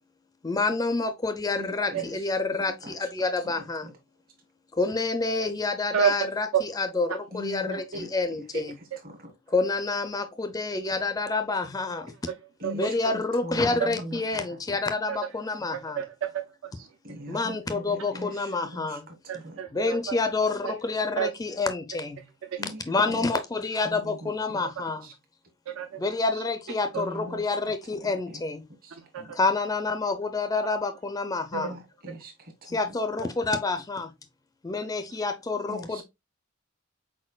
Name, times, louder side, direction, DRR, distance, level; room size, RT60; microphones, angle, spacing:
voice 1, 0.4-3.9 4.7-8.8 9.5-12.1 12.7-16.0 17.3-19.1 19.7-22.3 22.9-25.1 26.0-28.6 29.3-31.8 32.6-34.1 34.6-36.0, left 3 dB, 15° left, 0.4 m, -28 dB
voice 2, 1.5-2.1 2.6-3.1 3.8-3.9 7.3-8.1 9.0-9.2 12.6-14.4 17.0-19.5 22.6-23.2 23.8-24.3 25.0-25.1 26.9-27.6 28.8-29.3 31.5-32.8 35.7-36.0, equal, 45° right, 1.1 m, -41 dB
voice 3, 5.9-6.6 12.6-13.1 13.8-13.9 15.1-15.2 16.0-16.9 19.3-20.2 20.6-20.7 21.2-21.3 22.5-22.6 25.7-26.0 26.3-26.4 29.0-29.4 31.5-31.6 35.1-35.2, right 9 dB, 70° right, 0.4 m, -29 dB
4.3 x 4.2 x 2.2 m
head